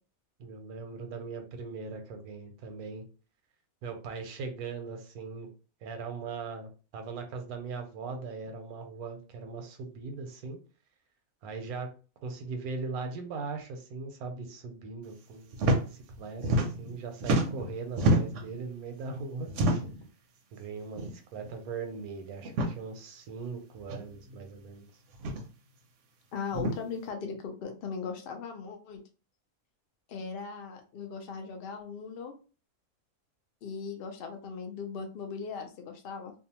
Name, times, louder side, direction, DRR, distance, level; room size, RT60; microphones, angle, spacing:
voice 1, 0.4-3.0 3.8-5.5 5.8-10.6 11.4-11.9 12.2-19.5 20.5-24.9, right 4 dB, 85° right, 5 dB, 1.1 m, -39 dB
Large Cloth Shaking Off, 15.5-15.8 16.1-16.9 17.2-18.5 19.5-20.0 20.9-21.1 21.4-21.5 22.4-22.7 23.9-24.0 25.1-25.4 26.5-26.8, right 1 dB, 70° right, 0.8 m, -27 dB
voice 2, 26.3-29.0 30.1-32.3 33.6-36.3, left 5 dB, 85° left, 4 dB, 0.5 m, -38 dB
2.6 x 2.2 x 2.8 m, 0.35 s
omnidirectional pair, 1.5 m